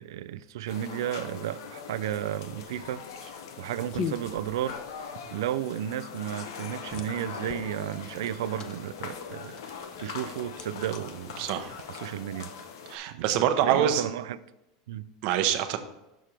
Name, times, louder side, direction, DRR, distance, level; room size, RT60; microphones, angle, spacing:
voice 1, 0.0-11.4 11.9-12.5 13.1-14.4 14.9-15.1, right 11 dB, 85° right, 0.3 m, -33 dB
sound 1, 0.7-13.0, left 6 dB, 85° left, 0.7 m, -41 dB
sound 2, 2.6-11.9, left 7 dB, 35° left, 0.6 m, -42 dB
voice 2, 11.4-11.8 12.9-14.0 15.2-15.8, right 10 dB, 55° right, 0.7 m, -25 dB
6.2 x 5.1 x 4.4 m
supercardioid pair, 140°, 2 cm